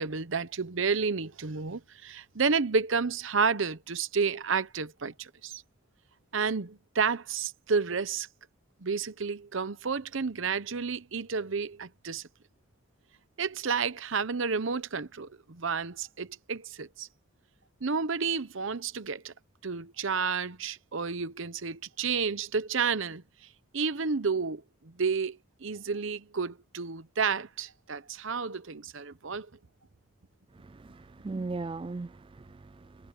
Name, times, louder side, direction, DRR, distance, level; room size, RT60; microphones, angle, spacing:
voice 1, 0.0-5.6 6.3-8.3 8.8-12.3 13.4-17.1 17.8-19.3 19.6-23.2 23.7-29.5, right 5 dB, 70° right, 0.8 m, -31 dB
voice 2, 30.6-33.1, right 3 dB, 25° right, 0.3 m, -38 dB
head